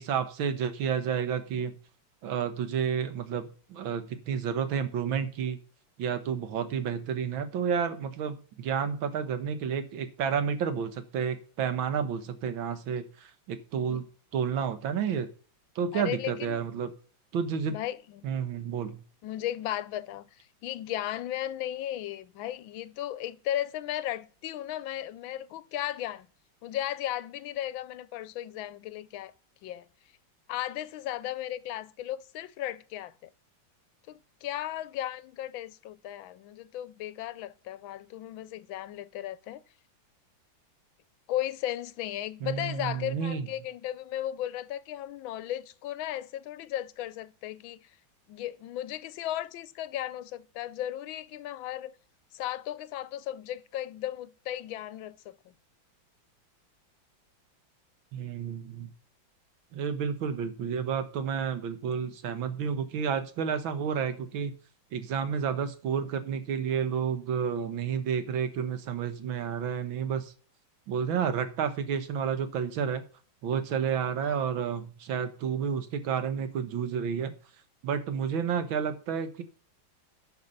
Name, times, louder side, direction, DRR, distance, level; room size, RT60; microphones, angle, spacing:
voice 1, 0.0-1.8 2.2-5.6 6.0-14.0 14.3-15.3 15.8-16.9 17.3-17.8 18.2-19.0 42.4-43.5 58.1-58.9 59.7-64.5 64.9-70.3 70.9-73.0 73.4-77.3 77.8-79.4, right 7 dB, 80° right, 1.9 m, -30 dB
voice 2, 15.9-16.7 17.7-18.3 19.2-26.3 26.6-29.3 29.6-29.9 30.5-33.3 34.1-39.6 41.3-48.0 48.3-51.9 52.3-55.5 74.2-74.4, left 12 dB, 80° left, 1.4 m, -36 dB
10.5 x 5.8 x 6.5 m
omnidirectional pair, 2.2 m